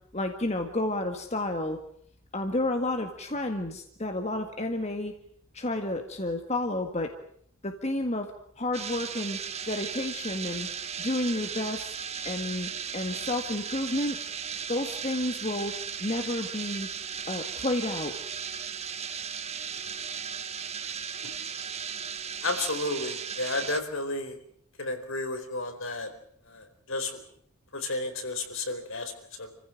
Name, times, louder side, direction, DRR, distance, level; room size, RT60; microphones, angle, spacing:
voice 1, 0.1-1.8 2.3-5.1 5.5-7.1 7.6-8.3 8.6-9.4 9.6-10.7 11.0-11.9 12.2-14.2 14.7-15.7 16.0-16.9 17.3-18.1, left 1 dB, 30° left, 5 dB, 1.9 m, -30 dB
sound 1, 8.7-23.8, right 7 dB, 30° right, 1.4 m, -36 dB
voice 2, 22.4-24.4 24.8-26.1 26.5-27.2 27.7-29.5, left 2 dB, 65° left, 7 dB, 4.4 m, -32 dB
29.0 x 15.5 x 9.2 m, 0.65 s
head